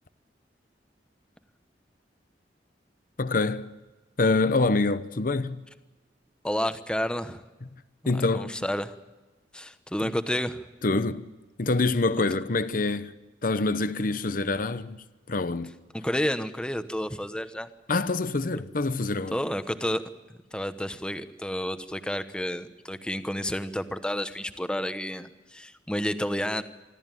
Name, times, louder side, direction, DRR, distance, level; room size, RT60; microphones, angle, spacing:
voice 1, 3.2-3.7 4.2-5.7 8.1-8.6 10.0-10.1 10.8-11.3 11.6-15.7 17.9-19.4, left 3 dB, 50° left, 0.9 m, -26 dB
voice 2, 6.4-7.4 8.3-8.9 9.5-10.6 12.2-12.3 15.9-17.7 19.3-20.0 20.5-26.6, equal, 5° left, 1.0 m, -30 dB
25.5 x 13.5 x 9.1 m
head